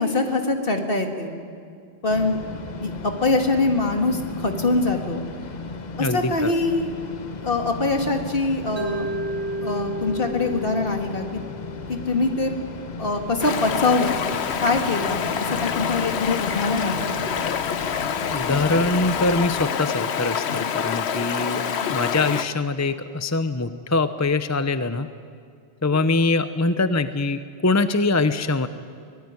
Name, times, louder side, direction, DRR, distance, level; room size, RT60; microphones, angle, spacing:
voice 1, 0.0-1.3 2.0-2.4 2.8-5.2 6.0-6.9 7.4-9.1 9.6-11.2 11.9-12.5 13.0-14.2 14.6-15.2 15.5-17.2, left 3 dB, 60° left, 4 dB, 2.4 m, -23 dB
sound 1, 2.1-19.7, left 3 dB, 45° left, 1.1 m, -35 dB
voice 2, 6.0-6.5 18.3-21.6 21.9-25.1 25.8-28.7, left 3 dB, 20° left, 11 dB, 0.6 m, -23 dB
Mallet percussion, 8.8-12.9, right 1 dB, 80° right, 2.4 m, -33 dB
Stream, 13.4-22.4, left 7 dB, 85° left, 1.1 m, -26 dB
24.0 x 19.5 x 9.7 m, 2.4 s
omnidirectional pair, 1.1 m